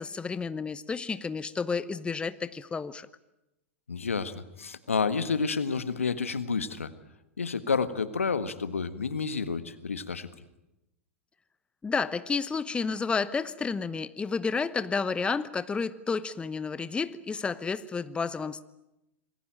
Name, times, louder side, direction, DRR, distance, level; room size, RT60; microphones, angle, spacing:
voice 1, 0.0-3.1 11.8-18.6, left 5 dB, 15° left, 15 dB, 0.9 m, -31 dB
voice 2, 3.9-6.9 7.4-10.3, left 5 dB, 85° left, 13 dB, 1.6 m, -30 dB
27.0 x 20.5 x 9.0 m, 0.91 s
hypercardioid pair, 95°, 7 cm